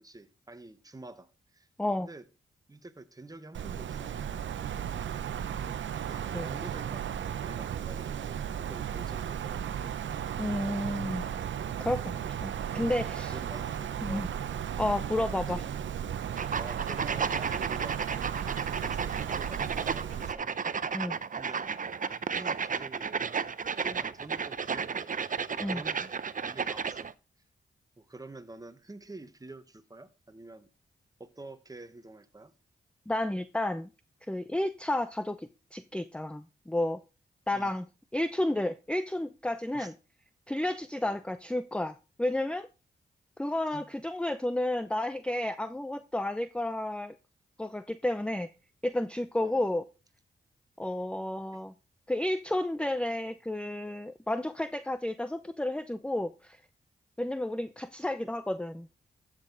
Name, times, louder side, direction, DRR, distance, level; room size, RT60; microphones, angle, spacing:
voice 1, 0.0-1.7 2.0-2.2 2.7-4.1 6.0-9.8 13.3-14.3 15.5-15.8 16.6-18.1 18.4-20.5 21.4-21.7 22.3-23.1 23.8-25.2 25.5-26.1 26.4-27.2 28.0-30.7 31.2-32.5 37.5-37.7 39.7-39.9 41.0-41.2 43.7-43.9 49.4-49.6 51.5-51.6, right 2 dB, 20° right, 1.3 m, -48 dB
Wind, 3.5-20.3, right 9 dB, 80° right, 0.7 m, -35 dB
voice 2, 10.4-11.2 11.8-13.4 14.0-14.3 14.8-15.6 20.9-21.2 25.6-25.8 33.1-33.9 34.3-37.0 37.5-37.9 38.1-39.9 40.5-42.7 43.4-47.1 47.6-48.5 48.8-49.8 50.8-51.7 52.1-56.6 57.2-58.9, left 1 dB, 5° left, 0.6 m, -31 dB
sound 1, 16.4-27.1, right 6 dB, 45° right, 0.7 m, -33 dB
14.5 x 6.6 x 4.0 m
cardioid pair, 45°, 19 cm